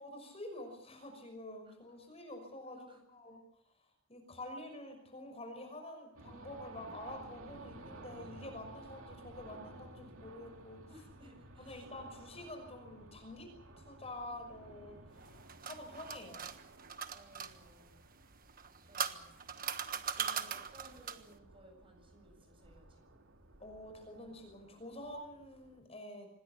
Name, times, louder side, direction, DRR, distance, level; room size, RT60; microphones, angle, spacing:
voice 1, 0.0-3.4 4.1-10.8 11.6-16.5 20.2-20.4 23.6-26.3, left 1 dB, 30° left, 5 dB, 5.9 m, -48 dB
voice 2, 1.7-2.0 2.7-3.0 10.8-11.9 17.1-18.0 18.9-19.4 19.9-20.0 20.3-23.2, equal, 25° right, 4 dB, 7.7 m, -60 dB
sound 1, 6.1-25.8, right 2 dB, 85° right, 2.7 m, -56 dB
sound 2, 15.2-17.5 18.5-21.3, right 7 dB, 45° right, 1.4 m, -39 dB
26.5 x 20.5 x 6.8 m, 0.73 s
head